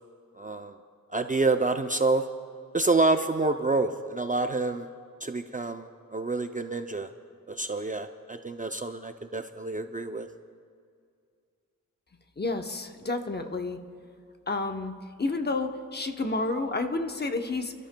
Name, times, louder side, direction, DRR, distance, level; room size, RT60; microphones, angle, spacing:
voice 1, 0.4-0.8 1.1-2.2 2.7-4.9 5.2-7.1 7.5-10.3, right 3 dB, 25° right, 7 dB, 0.4 m, -27 dB
voice 2, 12.4-13.8 14.5-14.9 15.2-17.7, left 3 dB, 30° left, 5 dB, 0.8 m, -30 dB
28.5 x 13.0 x 2.2 m, 2.2 s
wide cardioid pair, 125°, 32 cm